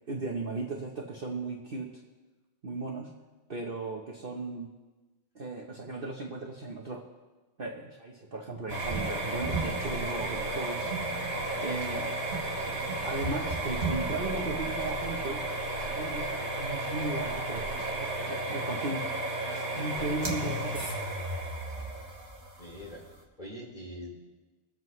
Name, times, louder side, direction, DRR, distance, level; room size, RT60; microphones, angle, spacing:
voice 1, 0.1-1.9 2.6-3.1 3.5-4.7 5.3-7.0 7.6-11.1 11.6-12.1 13.0-19.0 19.5-20.9, right 2 dB, 65° right, -1 dB, 0.5 m, -36 dB
sound 1, 8.7-23.2, right 2 dB, 35° right, 1.6 m, -33 dB
voice 2, 11.5-11.8 22.6-23.0 23.4-24.2, left 1 dB, 20° left, -4 dB, 2.8 m, -43 dB
23.0 x 7.7 x 3.1 m, 1.2 s
omnidirectional pair, 2.4 m